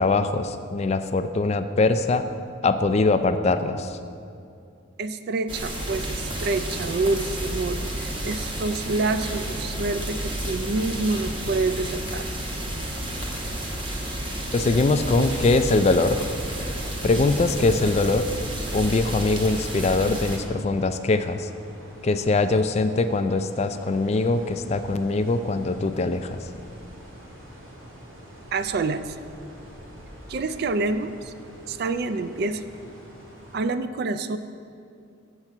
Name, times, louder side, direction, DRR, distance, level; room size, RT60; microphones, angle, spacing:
voice 1, 0.0-2.2 2.6-4.0 14.5-16.2 17.0-18.2 18.7-21.5 22.0-26.4, left 3 dB, 30° left, 10 dB, 0.3 m, -22 dB
voice 2, 5.0-12.3 28.5-29.2 30.3-31.3 31.7-32.6 33.5-34.4, right 3 dB, 50° right, 11 dB, 0.3 m, -27 dB
sound 1, 5.5-20.4, right 1 dB, 25° right, 0.9 m, -31 dB
sound 2, 19.4-33.6, equal, 85° right, 2.2 m, -46 dB
7.1 x 5.9 x 6.6 m, 2.5 s
head